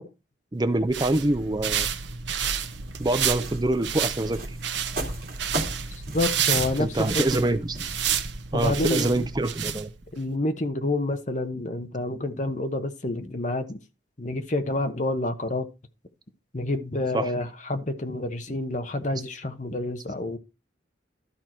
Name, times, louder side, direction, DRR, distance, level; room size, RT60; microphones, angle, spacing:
voice 1, 0.5-1.9 3.0-4.6 6.7-7.8 8.5-9.9 17.1-17.4 19.1-19.2, right 1 dB, 20° right, 0.5 m, -25 dB
sound 1, 0.7-10.2, right 8 dB, 75° right, 0.8 m, -30 dB
sound 2, 2.7-9.7, right 1 dB, 50° right, 2.4 m, -36 dB
voice 2, 6.1-7.1 8.5-9.2 10.1-13.8 14.2-15.7 16.5-20.4, left 2 dB, 40° left, 1.0 m, -28 dB
12.5 x 4.6 x 4.4 m
head